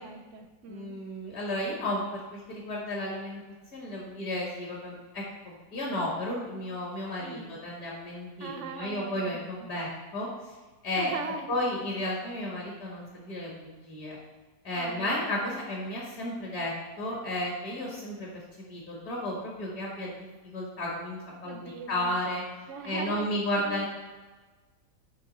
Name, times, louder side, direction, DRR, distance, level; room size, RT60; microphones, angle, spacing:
voice 1, 0.0-1.0 7.2-7.6 8.4-9.7 11.0-11.8 14.7-15.6 21.4-22.2 22.7-23.3 23.5-23.8, right 4 dB, 70° right, 8 dB, 0.7 m, -41 dB
voice 2, 0.7-3.4 3.7-10.3 10.8-11.1 11.5-14.2 14.6-16.7 17.0-18.3 18.7-20.2 20.5-22.4 22.8-23.9, left 1 dB, 60° left, -3 dB, 2.1 m, -33 dB
9.0 x 5.1 x 4.1 m, 1.3 s
omnidirectional pair, 1.8 m